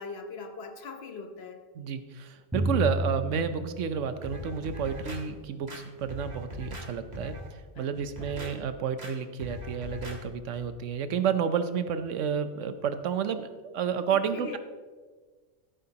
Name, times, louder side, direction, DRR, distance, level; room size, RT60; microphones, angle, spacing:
voice 1, 0.0-1.6 7.7-8.6 14.1-14.6, left 3 dB, 60° left, 6 dB, 1.2 m, -41 dB
voice 2, 1.7-7.3 7.8-14.6, right 7 dB, 90° right, 10 dB, 1.1 m, -30 dB
Drum, 2.5-4.9, right 1 dB, 5° right, 0.7 m, -32 dB
sound 1, 4.2-5.2 5.7-6.9 7.1-7.5 7.9-8.5 9.0-9.1 9.4-10.2 10.5-10.6, left 1 dB, 35° right, 1.6 m, -40 dB
15.0 x 8.9 x 2.9 m, 1.4 s
omnidirectional pair, 1.2 m